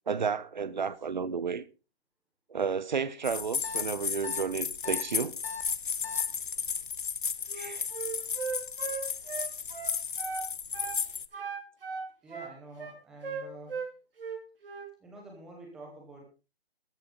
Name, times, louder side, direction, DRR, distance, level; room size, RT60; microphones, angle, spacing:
voice 1, 0.1-1.6 2.5-5.3 7.5-7.9, right 6 dB, 45° right, 1.0 m, -32 dB
sound 1, 3.2-11.3, left 6 dB, 55° left, 1.0 m, -34 dB
sound 2, 3.6-3.8 4.2-4.4 4.8-5.0 5.4-5.6 6.0-6.2, left 5 dB, 85° left, 3.1 m, -39 dB
Wind instrument woodwind instrument, 7.5-10.5 10.7-11.0 11.3-13.9 14.2-14.9, right 5 dB, 60° right, 4.5 m, -37 dB
voice 2, 12.2-13.8 15.0-16.2, right 2 dB, ahead, 0.9 m, -48 dB
13.5 x 13.0 x 3.9 m
hypercardioid pair, 170°, 32 cm